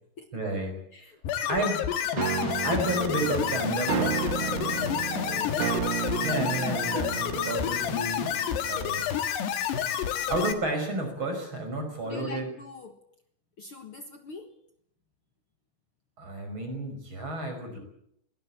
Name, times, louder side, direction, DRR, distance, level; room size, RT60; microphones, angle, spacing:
voice 1, 0.3-0.8 1.5-1.8 2.6-5.7 6.1-8.4 8.7-9.0 9.5-9.7 10.3-12.5 16.2-17.8, right 2 dB, 25° right, 5 dB, 5.9 m, -32 dB
voice 2, 0.9-1.8 2.6-2.9 5.3-5.8 12.0-13.0 13.6-14.5, left 4 dB, 90° left, 6 dB, 1.2 m, -44 dB
sound 1, 1.2-10.5, left 9 dB, 70° left, 3.7 m, -29 dB
sound 2, 2.2-9.0, right 11 dB, 75° right, 1.8 m, -33 dB
22.5 x 18.5 x 8.5 m, 0.73 s
omnidirectional pair, 5.1 m